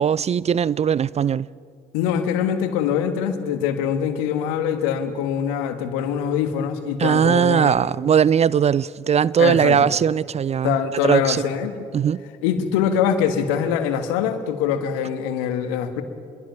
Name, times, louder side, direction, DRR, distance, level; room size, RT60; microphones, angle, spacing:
voice 1, 0.0-1.5 7.0-10.8 11.0-11.4 11.9-12.2, right 8 dB, 35° right, 0.4 m, -19 dB
voice 2, 1.9-7.7 9.4-9.8 10.6-11.8 12.4-16.0, left 8 dB, 75° left, 1.6 m, -23 dB
26.5 x 22.0 x 5.8 m
hypercardioid pair, 50°, 20 cm